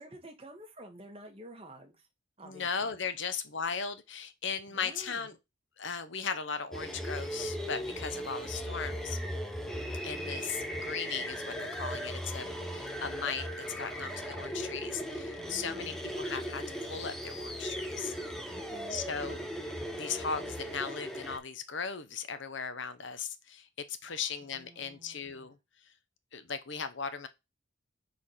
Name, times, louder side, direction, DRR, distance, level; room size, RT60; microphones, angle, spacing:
voice 1, 0.0-2.1 2.4-2.9 4.7-5.3 15.4-16.1 18.5-19.0 24.1-25.5, right 1 dB, 30° right, 1.5 m, -51 dB
voice 2, 2.4-5.3 5.8-9.2 10.0-13.5 13.8-18.1 18.9-19.5 19.9-25.6 26.3-27.3, left 6 dB, 60° left, 0.9 m, -37 dB
sound 1, 6.7-21.4, equal, ahead, 0.8 m, -38 dB
4.8 x 4.2 x 5.6 m
head